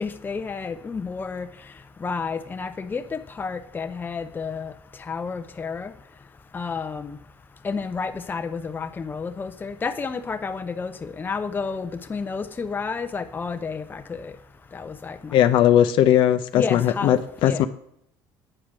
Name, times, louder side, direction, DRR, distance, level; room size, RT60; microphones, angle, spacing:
voice 1, 0.0-1.5 2.0-4.7 5.1-5.9 6.5-7.2 7.6-14.3 14.7-15.3 16.5-17.6, left 5 dB, 20° left, 0.6 m, -31 dB
voice 2, 15.3-17.7, left 11 dB, 65° left, 0.6 m, -18 dB
8.9 x 5.0 x 5.9 m
supercardioid pair, 100°, 9 cm